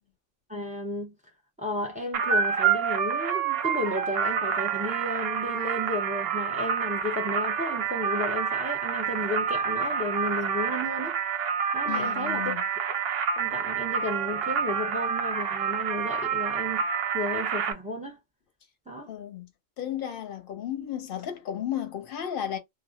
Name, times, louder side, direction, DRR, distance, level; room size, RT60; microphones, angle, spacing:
voice 1, 0.5-1.1 1.6-11.2 11.7-12.5 12.9-13.0 13.4-18.2 18.9-19.1, left 1 dB, 10° right, 0.6 m, -33 dB
sound 1, 2.1-17.7, right 7 dB, 60° right, 0.7 m, -28 dB
voice 2, 11.9-12.6 19.1-19.5 19.8-22.6, left 10 dB, 50° left, 0.8 m, -33 dB
2.3 x 2.0 x 2.8 m
omnidirectional pair, 1.3 m